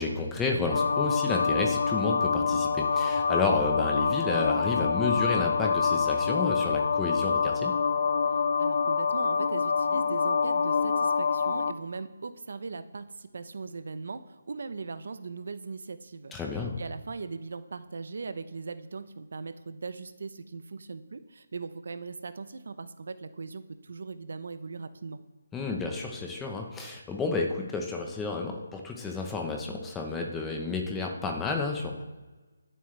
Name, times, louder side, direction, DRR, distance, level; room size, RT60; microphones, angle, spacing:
voice 1, 0.0-7.7 16.3-16.7 25.5-32.0, left 3 dB, 5° left, 1 dB, 1.0 m, -31 dB
sound 1, 0.7-11.7, left 5 dB, 50° left, 0.5 m, -26 dB
voice 2, 8.6-25.2, right 4 dB, 60° right, 12 dB, 0.7 m, -39 dB
21.5 x 7.6 x 3.3 m, 1.2 s
hypercardioid pair, 170°, 0 cm